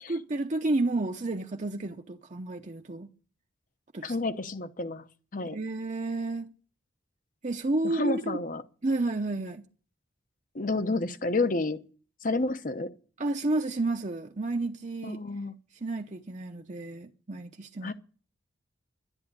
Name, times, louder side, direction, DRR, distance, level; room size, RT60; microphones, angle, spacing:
voice 1, 0.0-3.1 3.9-4.2 5.5-6.5 7.4-8.4 8.8-9.6 13.2-15.2 15.8-17.9, right 2 dB, 40° right, 0.8 m, -31 dB
voice 2, 4.0-5.0 5.3-5.6 7.8-8.6 10.5-11.8 12.2-12.9 15.0-15.5 17.8-17.9, left 2 dB, 45° left, 0.9 m, -30 dB
11.5 x 11.0 x 8.4 m
head